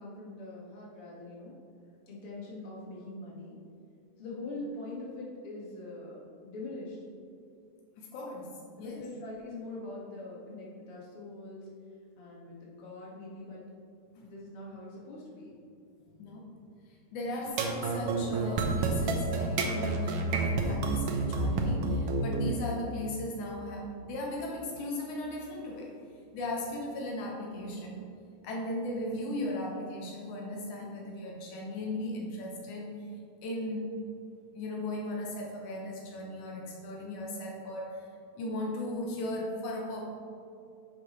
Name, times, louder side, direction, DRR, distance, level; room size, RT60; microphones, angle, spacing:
voice 1, 0.0-1.5 2.1-3.6 4.2-7.0 8.8-11.6 12.2-13.6 14.2-15.5, left 2 dB, 50° left, -5 dB, 2.5 m, -43 dB
voice 2, 8.0-9.1 16.1-16.5 17.1-25.9 26.3-28.0 28.4-33.1 33.4-34.0 34.5-38.1 38.3-40.1, left 1 dB, 80° left, -1 dB, 2.5 m, -37 dB
sound 1, 17.5-22.5, right 3 dB, 70° right, 1.5 m, -29 dB
10.0 x 7.5 x 3.2 m, 2.6 s
omnidirectional pair, 3.4 m